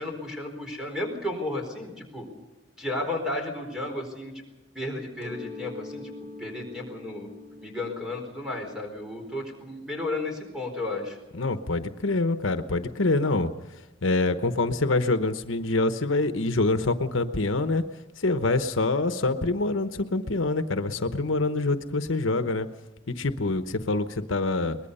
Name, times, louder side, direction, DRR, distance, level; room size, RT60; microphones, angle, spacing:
voice 1, 0.0-2.3 2.8-4.3 4.7-6.1 6.4-7.3 7.6-11.2, left 2 dB, 5° right, 1 dB, 4.5 m, -33 dB
Mallet percussion, 5.2-10.7, left 2 dB, 10° left, 3.9 m, -45 dB
voice 2, 11.3-13.5 14.0-17.8 18.2-22.7 23.1-24.8, left 2 dB, 80° left, 9 dB, 1.0 m, -25 dB
23.0 x 20.5 x 5.6 m, 1.1 s
head